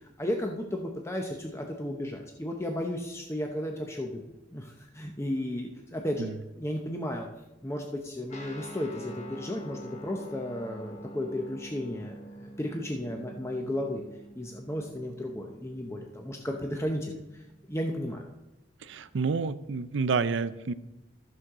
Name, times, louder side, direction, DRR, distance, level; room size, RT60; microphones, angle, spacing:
voice 1, 0.2-4.2 4.5-6.3 6.6-7.3 7.6-14.0 14.3-17.1 17.7-18.2, left 1 dB, 15° left, 2 dB, 0.8 m, -34 dB
Guitar, 8.3-18.1, equal, 40° left, 1.3 m, -47 dB
voice 2, 18.8-20.7, right 4 dB, 80° right, 14 dB, 0.5 m, -29 dB
14.0 x 6.3 x 3.7 m, 0.95 s
head